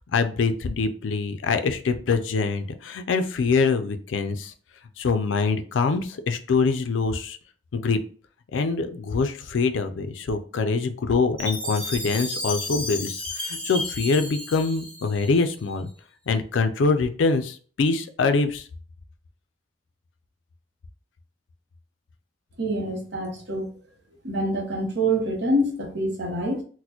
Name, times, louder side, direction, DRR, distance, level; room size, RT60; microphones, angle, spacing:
voice 1, 0.1-4.5 5.0-7.4 7.7-8.0 8.5-15.9 16.3-18.7, left 4 dB, 85° left, 9 dB, 0.4 m, -24 dB
Chime, 11.4-15.6, left 2 dB, 5° left, 0.8 m, -33 dB
voice 2, 22.6-23.6 24.2-26.6, right 1 dB, 60° right, 1 dB, 0.9 m, -26 dB
4.1 x 2.1 x 2.8 m, 0.43 s
head